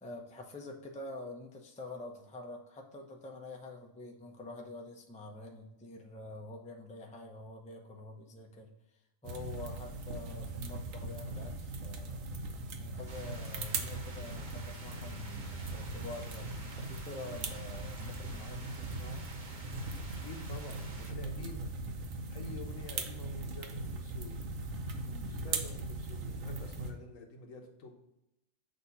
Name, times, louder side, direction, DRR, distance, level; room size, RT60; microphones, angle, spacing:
voice 1, 0.0-8.7 9.2-12.3 12.8-19.3 25.0-25.4, left 2 dB, 10° left, 1 dB, 0.5 m, -47 dB
sound 1, 9.2-26.9, right 3 dB, 80° right, 1.1 m, -40 dB
sound 2, 13.1-21.1, right 2 dB, 40° right, 0.9 m, -51 dB
voice 2, 20.2-21.8 22.3-24.4 25.3-27.9, left 2 dB, 80° left, 3 dB, 1.4 m, -48 dB
6.5 x 2.8 x 5.5 m, 0.90 s
omnidirectional pair, 1.4 m